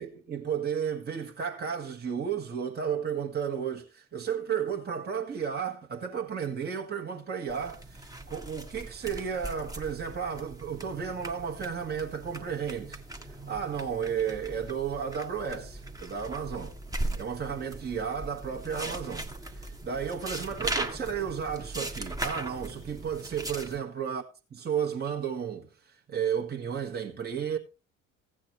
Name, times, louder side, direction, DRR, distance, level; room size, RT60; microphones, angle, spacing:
voice 1, 0.0-16.7 17.2-24.2 24.6-27.6, right 7 dB, 25° right, 1.6 m, -33 dB
sound 1, 7.5-23.8, right 1 dB, 10° right, 1.3 m, -39 dB
15.5 x 8.7 x 3.1 m
figure-of-eight pair, 55°, 39 cm